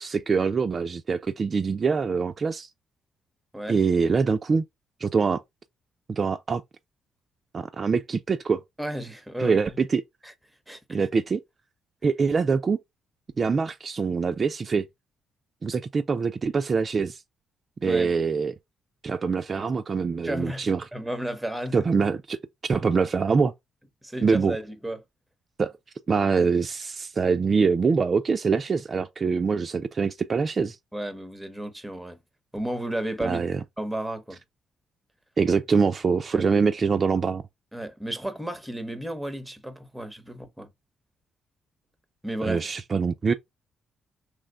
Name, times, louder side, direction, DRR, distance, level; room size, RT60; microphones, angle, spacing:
voice 1, 0.0-2.7 3.7-4.6 5.0-5.4 6.1-6.6 7.5-8.6 9.4-10.0 10.9-11.4 12.0-12.8 13.4-14.8 15.6-17.2 17.8-18.5 19.0-20.8 21.7-22.4 22.6-23.5 24.2-24.6 25.6-25.7 26.1-30.8 33.2-33.6 35.4-37.4 42.4-43.3, right 5 dB, 40° right, 0.3 m, -24 dB
voice 2, 8.8-9.8 10.2-10.3 10.7-11.1 17.8-18.1 19.5-19.7 20.2-21.8 24.0-25.0 30.9-32.2 32.5-33.4 33.8-34.4 36.3-36.5 37.7-40.7 42.2-42.7, right 1 dB, 5° right, 0.7 m, -33 dB
3.0 x 2.1 x 3.5 m
cardioid pair, 90°, 0 cm